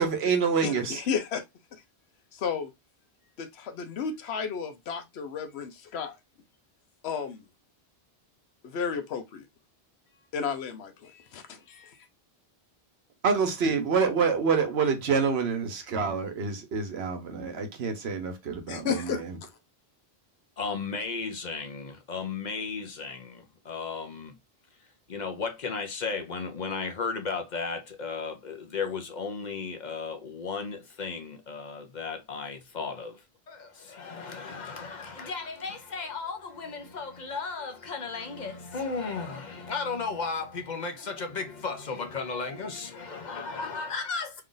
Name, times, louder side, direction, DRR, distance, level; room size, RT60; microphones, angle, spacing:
voice 1, 0.0-1.0 13.2-19.4, right 5 dB, 80° right, 1.1 m, -27 dB
voice 2, 0.6-1.4 1.7-1.8 2.3-2.7 3.4-6.2 7.0-7.4 8.6-9.4 10.3-12.0 18.7-19.5, left 6 dB, 90° left, 1.0 m, -33 dB
voice 3, 20.6-24.4 25.1-33.2 33.5-44.4, left 4 dB, 50° left, 0.8 m, -35 dB
3.3 x 2.5 x 3.8 m
omnidirectional pair, 1.0 m